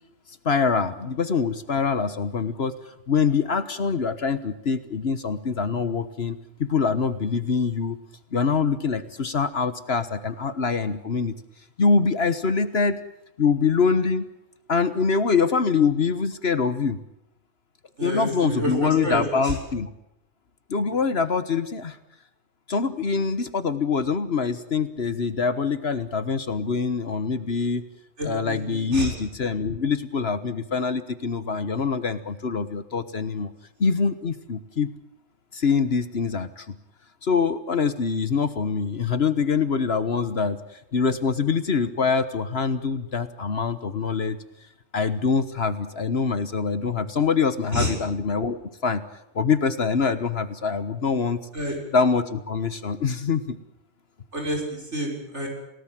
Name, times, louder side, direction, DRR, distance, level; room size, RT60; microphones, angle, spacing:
voice 1, 0.4-2.7 3.1-8.0 8.3-11.4 11.8-13.0 13.4-14.3 14.7-17.0 18.0-19.9 20.7-22.0 22.7-27.8 28.2-33.5 33.8-34.9 35.5-36.7 37.2-40.6 40.9-44.4 44.9-49.0 49.3-51.4 51.9-53.6, left 5 dB, 55° left, 12 dB, 1.5 m, -24 dB
voice 2, 18.0-19.6 28.2-29.1 47.7-47.9 51.5-51.8 54.3-55.5, equal, 65° right, 0 dB, 6.6 m, -28 dB
28.5 x 18.5 x 7.6 m, 0.83 s
omnidirectional pair, 1.3 m